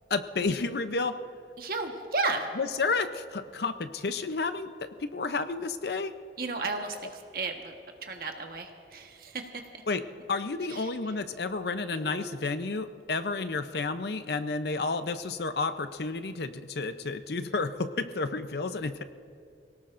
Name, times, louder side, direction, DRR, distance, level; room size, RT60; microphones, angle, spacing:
voice 1, 0.1-1.1 2.5-6.1 9.9-10.0 10.3-19.0, left 3 dB, 70° left, 10 dB, 0.6 m, -31 dB
voice 2, 1.6-2.5 6.4-7.7 8.0-9.4 10.7-10.8 11.9-12.4, right 3 dB, 55° right, 3 dB, 1.3 m, -33 dB
25.5 x 18.0 x 2.6 m, 2.4 s
head